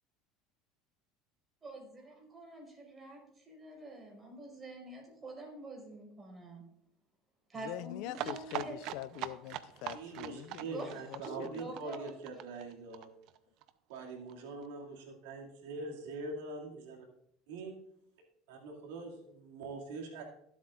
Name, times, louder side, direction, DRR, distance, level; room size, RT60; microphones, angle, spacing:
voice 1, 1.6-6.6 7.5-8.8 10.7-12.1, right 2 dB, 25° right, 4.7 m, -47 dB
voice 2, 7.6-11.8, left 15 dB, 70° left, 0.5 m, -44 dB
sound 1, 8.1-13.7 14.0-14.1 14.3-14.4 14.6-14.7, right 13 dB, 60° right, 0.6 m, -42 dB
voice 3, 9.9-13.1 13.9-17.1 17.5-17.8 18.5-20.2, right 3 dB, 85° right, 2.3 m, -43 dB
19.0 x 7.9 x 2.5 m
supercardioid pair, 105°, 0 cm